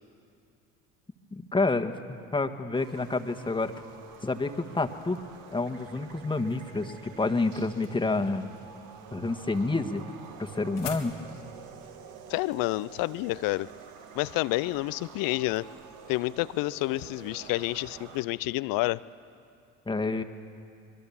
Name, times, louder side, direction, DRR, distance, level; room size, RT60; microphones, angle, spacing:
voice 1, 1.3-1.9 2.3-3.7 4.2-5.2 5.5-8.5 9.1-10.0 10.4-11.1 19.9-20.2, left 3 dB, 15° left, 6 dB, 1.6 m, -28 dB
sound 1, 2.7-18.2, right 6 dB, 65° right, 1.9 m, -48 dB
sound 2, 10.0-14.3, left 9 dB, 80° left, 1.9 m, -46 dB
voice 2, 12.3-13.7 14.1-15.7 16.1-19.0, left 20 dB, 60° left, 19 dB, 0.6 m, -29 dB
25.0 x 22.0 x 7.2 m, 2.6 s
hypercardioid pair, 65°, 38 cm